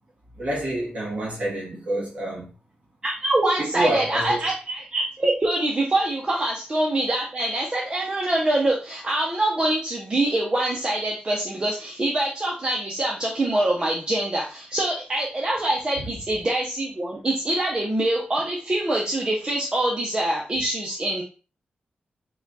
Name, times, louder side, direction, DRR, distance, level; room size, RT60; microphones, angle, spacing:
voice 1, 0.4-2.5 3.6-4.4, right 1 dB, 45° right, 2.0 m, -27 dB
voice 2, 3.0-21.2, right 1 dB, 25° right, 0.8 m, -24 dB
4.7 x 2.3 x 4.1 m
wide cardioid pair, 145°, 3 cm